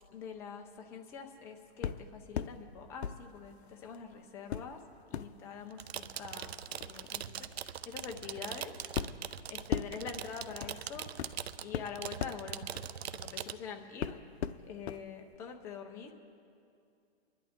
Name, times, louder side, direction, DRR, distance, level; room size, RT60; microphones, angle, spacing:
voice 1, 0.1-4.8 5.1-6.5 6.8-8.7 9.1-12.8 13.1-14.2 14.6-16.1, left 6 dB, 10° left, 4 dB, 0.4 m, -45 dB
sound 1, 1.8-2.6 3.0-4.0 4.5-13.6 14.0-15.0 15.3-15.4, left 8 dB, 85° left, 0.6 m, -40 dB
sound 2, 5.7-13.5, right 10 dB, 75° right, 0.7 m, -42 dB
24.5 x 11.5 x 3.6 m, 2.5 s
hypercardioid pair, 155°, 32 cm